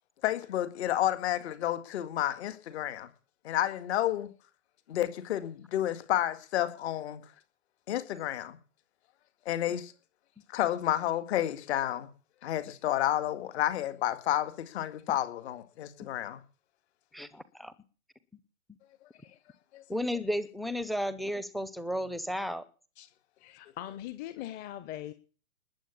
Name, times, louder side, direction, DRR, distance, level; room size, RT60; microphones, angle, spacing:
voice 1, 0.2-3.1 3.4-4.3 4.9-7.2 7.9-8.6 9.5-9.9 10.5-12.1 12.4-16.4 19.7-19.8, left 12 dB, 45° left, 12 dB, 2.1 m, -30 dB
voice 2, 17.1-17.7 19.9-22.6, equal, ahead, 15 dB, 0.7 m, -33 dB
voice 3, 23.4-25.1, left 13 dB, 20° left, 11 dB, 1.1 m, -40 dB
20.5 x 8.2 x 8.6 m, 0.39 s
figure-of-eight pair, 125°, 44 cm